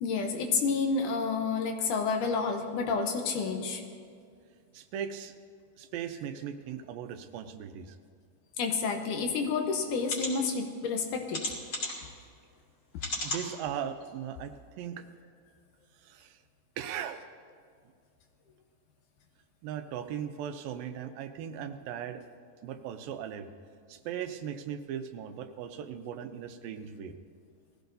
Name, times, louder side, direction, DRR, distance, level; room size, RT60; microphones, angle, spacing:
voice 1, 0.0-3.8 8.6-11.4, left 4 dB, 75° left, 4 dB, 2.2 m, -29 dB
voice 2, 4.7-5.3 5.8-8.0 13.2-15.1 16.0-16.4 16.8-17.3 19.6-22.2 22.6-23.5 23.9-27.2, right 9 dB, 85° right, 8 dB, 2.5 m, -38 dB
sound 1, 9.3-9.4 10.0-10.3 11.3-12.1 13.0-13.5 14.0-14.1 14.4-14.5, left 2 dB, 30° left, 3.2 m, -34 dB
19.5 x 15.0 x 2.7 m, 2.2 s
omnidirectional pair, 4.1 m